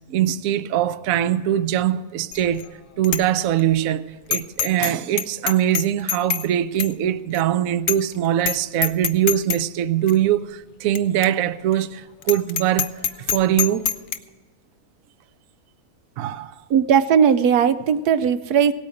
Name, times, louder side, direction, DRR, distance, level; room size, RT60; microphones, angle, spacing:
voice 1, 0.1-2.6 3.0-13.0 13.3-14.0 16.2-16.6, right 11 dB, 70° right, 1.0 m, -22 dB
Bicycle bell, 2.3-2.7 3.0-3.2 3.6-3.7 4.3-4.9 5.2-6.5 6.8-6.9 7.3-7.4 7.9-8.1 8.4-8.6 8.8-9.6 10.1-10.2 11.0-11.1 11.2-11.3 11.7-11.8 12.2-14.2, left 9 dB, 80° left, 0.4 m, -24 dB
voice 2, 16.7-18.7, right 7 dB, 90° right, 1.2 m, -17 dB
17.5 x 8.7 x 6.4 m
omnidirectional pair, 1.6 m